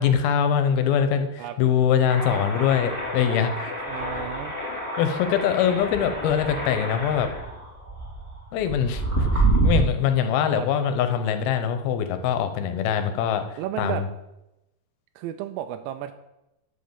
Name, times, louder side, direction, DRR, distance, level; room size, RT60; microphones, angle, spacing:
voice 1, 0.0-3.7 5.0-7.3 8.5-14.1, left 8 dB, 75° left, 9 dB, 2.7 m, -23 dB
sound 1, 2.1-9.9, right 2 dB, 5° left, 3.1 m, -27 dB
voice 2, 3.9-4.5 10.5-10.7 13.6-14.0 15.2-16.1, right 12 dB, 90° right, 7 dB, 2.8 m, -32 dB
10.0 x 6.4 x 7.1 m, 0.91 s
omnidirectional pair, 4.8 m